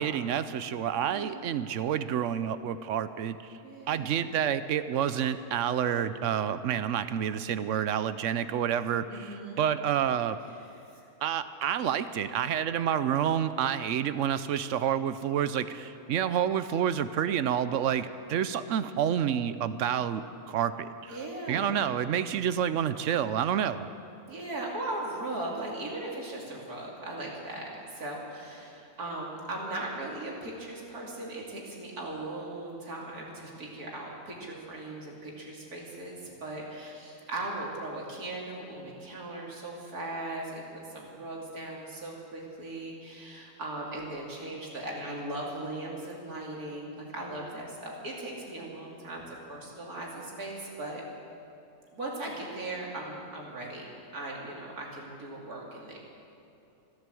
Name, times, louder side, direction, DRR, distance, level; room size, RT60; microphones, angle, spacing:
voice 1, 0.0-3.6 3.9-10.4 11.2-21.2 21.5-23.9, right 9 dB, 65° right, 13 dB, 0.9 m, -29 dB
voice 2, 1.1-1.5 3.6-4.3 9.1-9.6 10.9-11.1 21.1-22.0 24.3-51.0 51.9-56.0, right 2 dB, 85° right, -2 dB, 3.2 m, -38 dB
14.5 x 12.5 x 7.7 m, 2.8 s
omnidirectional pair, 1.6 m